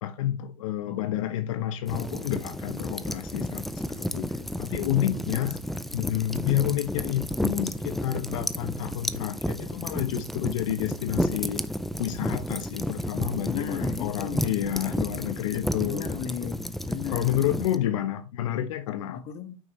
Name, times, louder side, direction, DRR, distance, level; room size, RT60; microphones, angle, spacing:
voice 1, 0.0-5.6 5.9-11.6 12.0-16.1 16.4-16.5 17.1-19.2, left 12 dB, 70° left, 0.8 m, -29 dB
voice 2, 0.8-1.5 4.4-5.8 6.3-6.5 13.5-14.7 15.8-18.0 19.1-19.6, left 7 dB, 35° left, 1.3 m, -38 dB
sound 1, 1.9-17.8, equal, ahead, 0.4 m, -32 dB
sound 2, 3.9-4.1 5.1-5.3 6.7-6.9 8.3-8.5, right 1 dB, 25° right, 4.7 m, -49 dB
9.0 x 6.4 x 3.1 m
hypercardioid pair, 125°, 18 cm